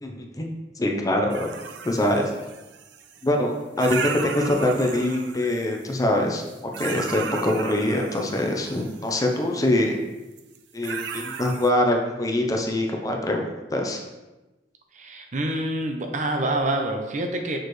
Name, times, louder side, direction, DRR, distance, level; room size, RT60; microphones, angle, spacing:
voice 1, 0.0-1.5 1.8-2.3 3.2-6.4 6.8-10.0 10.7-14.0, left 1 dB, 20° left, 2 dB, 0.6 m, -24 dB
sound 1, 1.3-3.3 3.8-6.0 6.4-9.2 10.4-10.6 10.8-11.7, right 5 dB, 85° right, 0.5 m, -35 dB
voice 2, 14.9-17.6, right 1 dB, 45° right, 4 dB, 0.7 m, -26 dB
6.2 x 4.9 x 3.1 m, 1.1 s
head